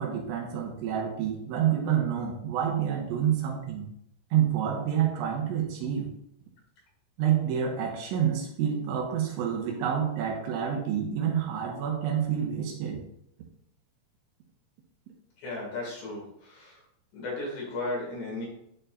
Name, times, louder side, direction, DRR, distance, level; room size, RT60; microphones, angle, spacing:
voice 1, 0.0-3.9 4.3-6.1 7.2-13.0, right 9 dB, 80° right, 1 dB, 3.1 m, -28 dB
voice 2, 15.4-16.8 17.1-18.5, left 2 dB, 60° left, -5 dB, 4.2 m, -35 dB
11.0 x 4.5 x 2.5 m, 0.75 s
omnidirectional pair, 5.8 m